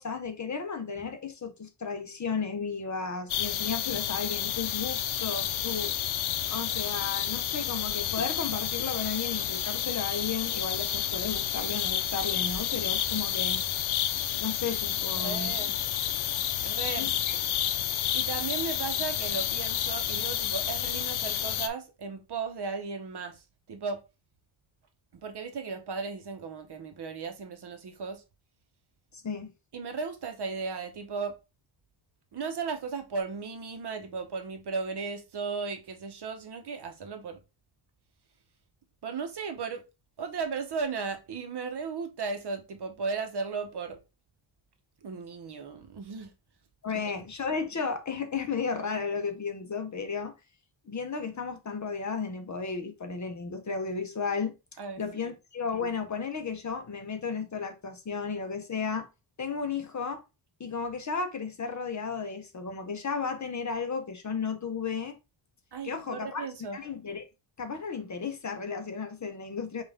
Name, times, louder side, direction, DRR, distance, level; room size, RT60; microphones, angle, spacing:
voice 1, 0.0-6.0 6.5-13.6 14.4-15.7 17.0-17.4 29.1-29.5 46.8-50.3 50.9-54.5 55.0-59.1 59.4-60.2 60.6-65.2 65.8-67.3 67.6-69.8, left 5 dB, 35° left, 0.6 m, -34 dB
sound 1, 3.3-21.7, left 11 dB, 80° left, 0.6 m, -30 dB
Rain, 7.7-13.3, right 2 dB, 15° right, 1.1 m, -50 dB
voice 2, 15.2-15.8 16.6-17.1 18.1-23.4 23.7-24.0 25.2-28.2 29.7-31.4 32.3-37.4 39.0-39.8 40.2-44.0 45.0-46.3 46.9-47.2 54.8-55.0 65.7-66.8, right 5 dB, 55° right, 0.8 m, -35 dB
5.4 x 2.4 x 3.4 m
wide cardioid pair, 165°, 48 cm